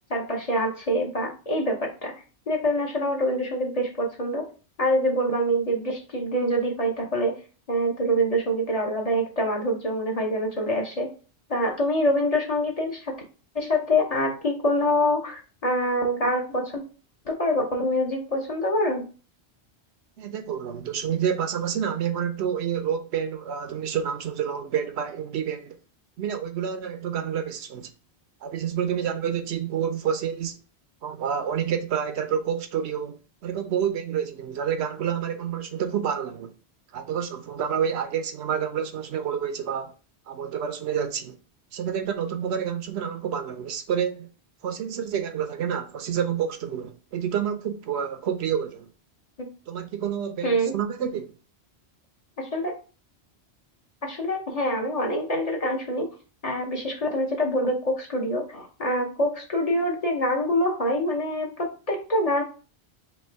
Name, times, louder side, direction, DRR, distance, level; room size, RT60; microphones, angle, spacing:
voice 1, 0.1-2.1 2.5-4.5 4.8-7.3 7.7-11.1 11.5-13.2 13.5-16.8 17.3-19.0 49.4-49.5 50.4-50.7 52.4-52.7 54.0-56.1 56.4-62.4, equal, 40° left, 0.8 m, -25 dB
voice 2, 20.2-25.8 26.2-27.9 28.4-30.6 31.0-36.5 36.9-39.9 40.3-41.4 41.7-44.3 44.6-48.9 49.7-51.3, right 8 dB, 75° right, 0.9 m, -28 dB
3.3 x 2.9 x 4.3 m
omnidirectional pair, 1.1 m